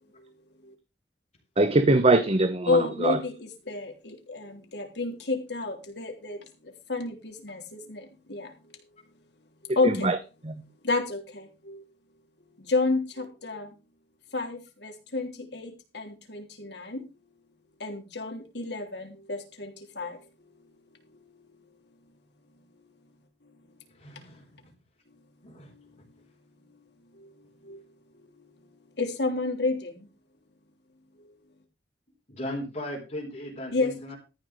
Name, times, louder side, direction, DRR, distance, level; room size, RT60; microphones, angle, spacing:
voice 1, 1.6-3.2 9.8-10.2 10.4-10.6, right 2 dB, 35° right, 0.9 m, -22 dB
voice 2, 2.7-6.4 6.9-8.5 9.8-10.1 10.8-11.8 12.7-13.7 14.3-17.0 17.8-20.2 27.7-27.8 29.0-30.0 33.7-34.1, left 3 dB, 75° left, 3.6 m, -30 dB
voice 3, 24.0-24.7 25.4-25.7 32.3-34.2, left 1 dB, 40° left, 4.3 m, -37 dB
14.0 x 6.0 x 6.4 m
head